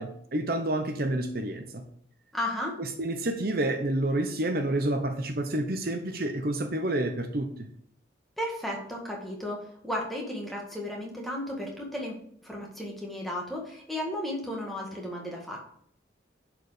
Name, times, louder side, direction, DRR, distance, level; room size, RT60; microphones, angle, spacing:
voice 1, 0.0-1.8 2.8-7.7, right 1 dB, 50° right, 6 dB, 0.8 m, -29 dB
voice 2, 2.3-2.8 8.4-12.1 12.4-15.6, left 1 dB, ahead, -2 dB, 1.8 m, -34 dB
10.5 x 4.9 x 5.0 m, 0.66 s
head